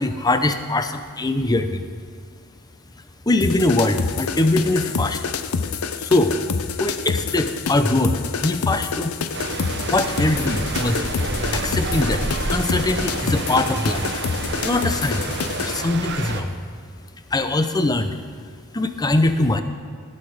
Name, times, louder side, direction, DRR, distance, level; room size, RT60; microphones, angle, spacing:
voice 1, 0.0-1.8 3.3-5.2 6.0-6.4 6.8-9.1 9.9-11.0 11.5-14.2 14.6-15.3 15.6-16.5 17.3-18.1 18.7-19.6, left 2 dB, 20° left, 9 dB, 0.6 m, -22 dB
sound 1, 3.4-15.8, left 5 dB, 75° left, 0.6 m, -27 dB
sound 2, 9.3-16.4, right 2 dB, 50° right, 1.0 m, -28 dB
18.0 x 6.5 x 5.0 m, 2.2 s
head